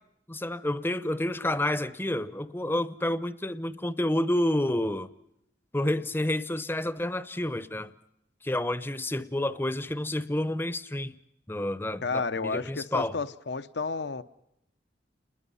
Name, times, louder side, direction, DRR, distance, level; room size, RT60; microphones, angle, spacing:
voice 1, 0.3-5.1 5.7-7.9 8.4-11.1 11.5-13.1, left 1 dB, 10° left, 14 dB, 0.8 m, -29 dB
voice 2, 12.0-14.2, left 4 dB, 70° left, 13 dB, 0.9 m, -31 dB
29.0 x 21.0 x 5.6 m, 0.81 s
head